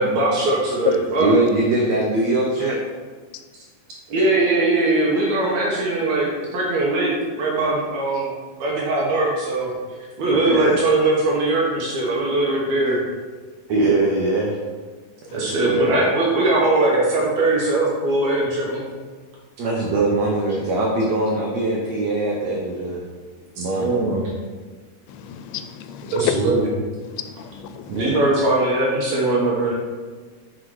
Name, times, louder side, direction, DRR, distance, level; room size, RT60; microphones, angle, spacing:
voice 1, 0.0-1.3 4.1-7.1 7.4-8.3 8.6-9.7 10.2-13.0 15.3-18.9 23.8-24.2 26.1-26.7 27.9-29.7, right 2 dB, 65° right, 1.9 m, -20 dB
voice 2, 1.2-2.8 10.3-10.8 13.7-14.6 15.3-16.1 19.6-23.0 23.6-23.9 28.0-28.1, right 2 dB, 85° right, 1.5 m, -21 dB
voice 3, 25.1-26.4 27.1-28.1, left 10 dB, 85° left, 2.4 m, -31 dB
6.2 x 5.6 x 4.7 m
omnidirectional pair, 4.4 m